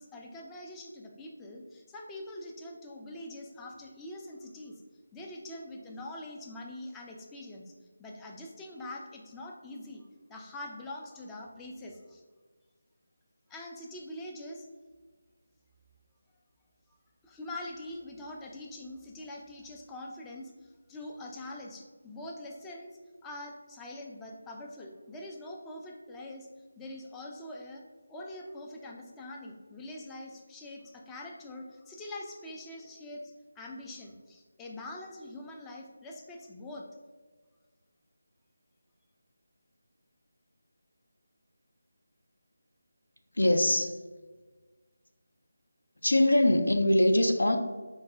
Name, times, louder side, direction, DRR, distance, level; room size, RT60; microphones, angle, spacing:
voice 1, 0.0-4.7 5.1-7.7 8.0-12.2 13.5-14.7 17.2-26.5 26.8-27.8 28.1-36.9, left 1 dB, 10° left, -1 dB, 0.3 m, -44 dB
voice 2, 43.3-44.0 46.0-47.6, left 1 dB, 85° left, 5 dB, 0.4 m, -23 dB
4.6 x 2.1 x 3.2 m, 1.4 s
figure-of-eight pair, 165°, 0 cm